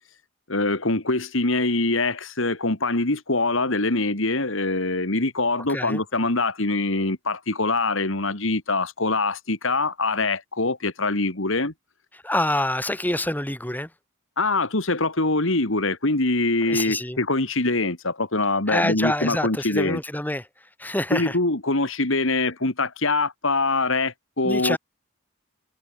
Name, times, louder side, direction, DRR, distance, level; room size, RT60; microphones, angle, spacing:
voice 1, 0.5-11.7 14.4-20.0 21.1-24.8, left 2 dB, 65° left, 2.5 m, -24 dB
voice 2, 5.7-6.0 12.1-13.9 16.7-17.2 18.7-21.4 24.4-24.8, left 1 dB, 10° left, 5.7 m, -26 dB
head